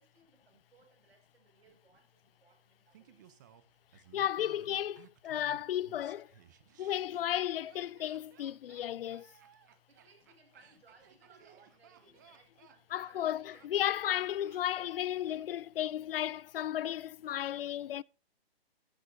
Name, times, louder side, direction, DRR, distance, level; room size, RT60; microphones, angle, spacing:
voice 1, 0.0-3.4 9.9-14.0, right 4 dB, 75° right, 5.9 m, -65 dB
Laughter, 2.9-15.9 16.2-16.3, right 10 dB, 20° right, 0.6 m, -60 dB
voice 2, 4.1-6.3 6.8-9.3 12.9-18.0, left 11 dB, 70° left, 0.5 m, -34 dB
14.5 x 10.5 x 2.6 m
hypercardioid pair, 160°, 30 cm